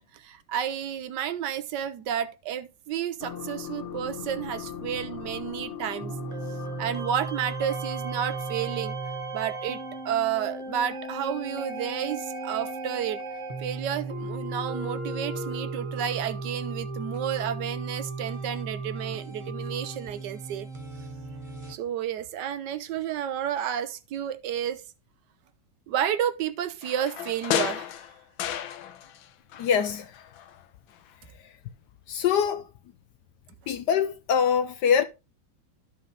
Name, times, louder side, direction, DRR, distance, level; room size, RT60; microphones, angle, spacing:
voice 1, 0.0-6.1 6.8-9.0 9.3-13.2 13.6-20.7 21.7-24.8 25.9-27.9, right 9 dB, 70° right, 1.2 m, -31 dB
sound 1, 3.2-8.8, left 8 dB, 35° left, 1.1 m, -40 dB
sound 2, 6.0-21.8, right 3 dB, 20° right, 0.8 m, -35 dB
sound 3, 26.8-29.3 29.5-30.6 30.9-31.0, left 11 dB, 85° left, 1.5 m, -32 dB
voice 2, 29.6-30.1 32.1-32.6 33.7-35.0, left 7 dB, 70° left, 1.1 m, -24 dB
13.0 x 5.1 x 2.8 m
omnidirectional pair, 2.1 m